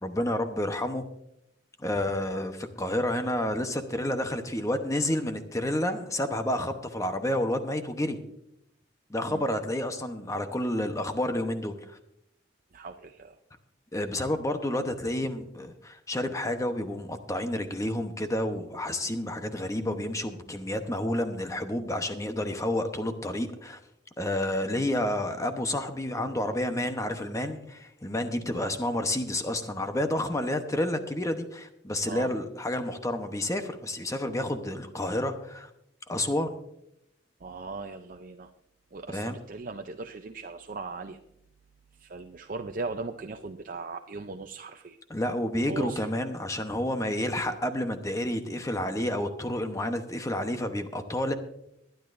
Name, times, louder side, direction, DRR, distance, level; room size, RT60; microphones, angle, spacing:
voice 1, 0.0-1.0 1.8-8.2 9.1-12.0 13.9-23.8 24.2-35.7 36.1-36.6 39.1-39.4 45.1-51.3, left 1 dB, 15° left, 7 dB, 0.9 m, -30 dB
voice 2, 12.7-13.4 28.4-28.7 32.1-32.3 37.4-38.5 38.9-41.2 42.0-45.0 45.6-46.1, right 3 dB, 45° right, 5 dB, 0.5 m, -38 dB
21.5 x 10.5 x 2.6 m, 0.79 s
head